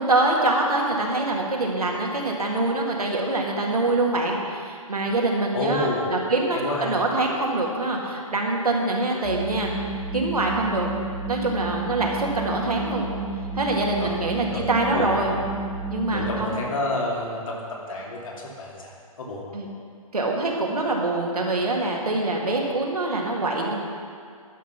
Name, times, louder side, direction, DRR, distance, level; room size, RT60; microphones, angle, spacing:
voice 1, 0.0-9.7 10.1-10.9 11.3-13.1 13.5-15.3 15.9-16.6 19.5-19.7 20.1-23.8, right 2 dB, 90° right, -1 dB, 2.0 m, -24 dB
voice 2, 5.5-6.1 6.5-7.0 14.0-14.1 14.4-14.7 14.9-15.4 16.1-19.5, left 2 dB, 60° left, -3 dB, 2.6 m, -29 dB
sound 1, 9.2-16.5, right 3 dB, ahead, 1.1 m, -32 dB
11.5 x 5.7 x 5.7 m, 2.2 s
hypercardioid pair, 140°, 19 cm